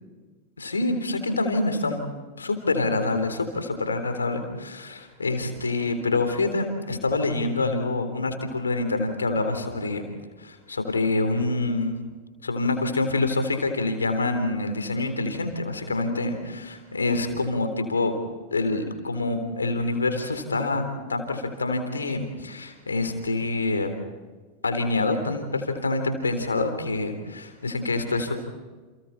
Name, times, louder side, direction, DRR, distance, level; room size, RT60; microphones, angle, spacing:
voice 1, 0.6-2.0 2.4-10.0 10.4-12.0 12.4-18.2 18.5-20.8 21.1-23.9 24.6-28.3, left 2 dB, 75° left, 7 dB, 3.6 m, -26 dB
30.0 x 29.5 x 4.2 m, 1.3 s
figure-of-eight pair, 90°, 0 cm